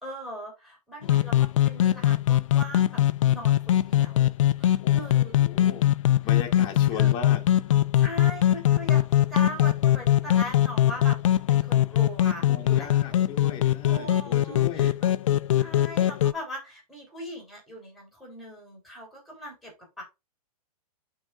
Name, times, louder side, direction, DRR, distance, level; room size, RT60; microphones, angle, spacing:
voice 1, 0.0-3.0 3.3-5.4 6.2-6.4 6.9-7.2 8.0-13.2 13.8-15.1 15.5-20.0, equal, ahead, 4.3 m, -40 dB
sound 1, 1.0-16.3, left 12 dB, 55° left, 0.6 m, -22 dB
voice 2, 4.8-5.1 5.4-5.9 6.2-7.5 12.4-15.0, left 7 dB, 25° left, 1.5 m, -37 dB
11.0 x 4.7 x 2.5 m
hypercardioid pair, 160°, 20 cm